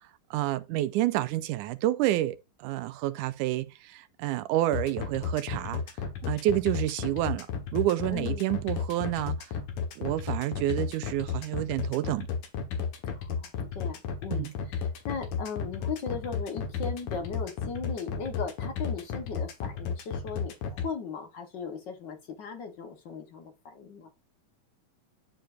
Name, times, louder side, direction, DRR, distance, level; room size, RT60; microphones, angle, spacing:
voice 1, 0.3-5.8 6.3-7.5 7.7-9.4 10.0-12.3 14.3-14.5, right 14 dB, 90° right, 2.1 m, -29 dB
sound 1, 4.7-20.8, left 6 dB, 80° left, 2.8 m, -32 dB
voice 2, 8.1-8.5 13.1-13.5 13.7-24.1, left 5 dB, 60° left, 1.2 m, -38 dB
11.5 x 4.6 x 2.5 m
omnidirectional pair, 3.6 m